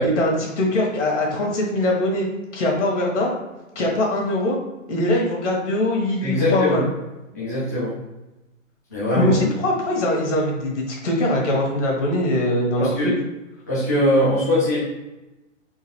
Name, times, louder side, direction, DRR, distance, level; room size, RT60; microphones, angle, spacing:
voice 1, 0.0-2.2 2.5-3.3 3.7-4.6 4.9-6.8 9.2-13.1, left 1 dB, 65° left, -1 dB, 1.2 m, -22 dB
voice 2, 6.2-6.8 7.3-7.9 8.9-9.3 12.8-13.1 13.7-14.8, left 1 dB, 15° left, -12 dB, 0.3 m, -21 dB
3.8 x 2.4 x 2.9 m, 1.0 s
hypercardioid pair, 150°, 39 cm